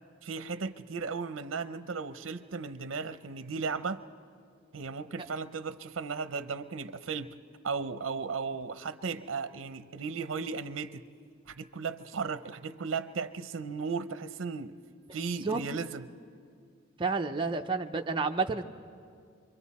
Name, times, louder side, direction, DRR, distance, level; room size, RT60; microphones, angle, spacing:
voice 1, 0.2-4.0 4.7-7.3 7.6-11.0 11.5-14.7 15.1-16.0, right 5 dB, 75° right, 11 dB, 0.6 m, -36 dB
voice 2, 17.0-18.6, right 4 dB, 25° right, 3 dB, 0.6 m, -30 dB
26.0 x 24.5 x 4.2 m, 2.2 s
head